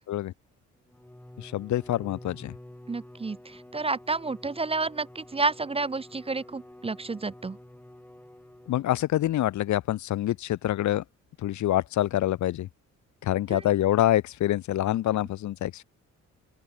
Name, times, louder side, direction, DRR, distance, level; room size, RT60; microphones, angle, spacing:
Bowed string instrument, 0.9-9.2, left 1 dB, 5° left, 5.9 m, -49 dB
voice 1, 1.4-2.5 8.7-11.0 11.4-12.7 13.2-15.8, left 13 dB, 70° left, 1.0 m, -26 dB
voice 2, 2.9-7.6 13.5-13.6, right 3 dB, 20° right, 0.7 m, -30 dB
open air
cardioid pair, 90°, 30 cm